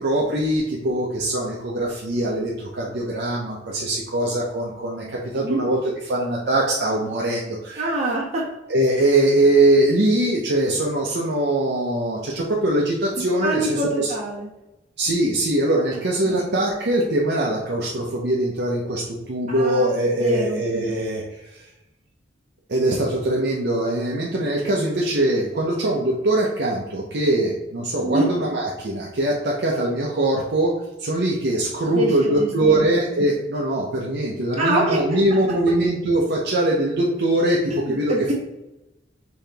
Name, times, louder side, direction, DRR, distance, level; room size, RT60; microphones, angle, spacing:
voice 1, 0.0-5.8 6.0-8.0 8.7-14.1 15.0-21.2 21.5-21.6 22.7-30.7 31.0-38.3, right 1 dB, 60° right, -3 dB, 0.6 m, -22 dB
voice 2, 7.8-8.5 13.4-14.5 16.2-16.4 19.5-20.6 28.0-28.3 31.9-32.9 34.6-35.0 37.7-38.3, right 2 dB, 35° right, -5 dB, 1.4 m, -25 dB
5.6 x 2.8 x 3.4 m, 0.96 s
head